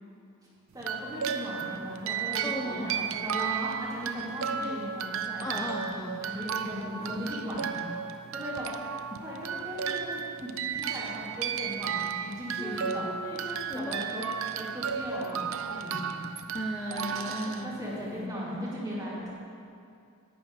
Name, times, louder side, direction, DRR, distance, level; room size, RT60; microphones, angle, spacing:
voice 1, 0.7-5.8 6.2-8.7 9.2-10.5 10.8-13.0 13.7-16.2 17.2-17.4 17.6-19.3, equal, 15° right, -8 dB, 2.8 m, -38 dB
sound 1, 0.8-18.2, right 7 dB, 65° right, 0.5 m, -34 dB
voice 2, 2.4-2.8 4.6-4.8 5.4-6.2 12.6-13.9 16.5-17.7, equal, 15° left, -2 dB, 0.5 m, -36 dB
11.0 x 8.1 x 4.8 m, 2.4 s
head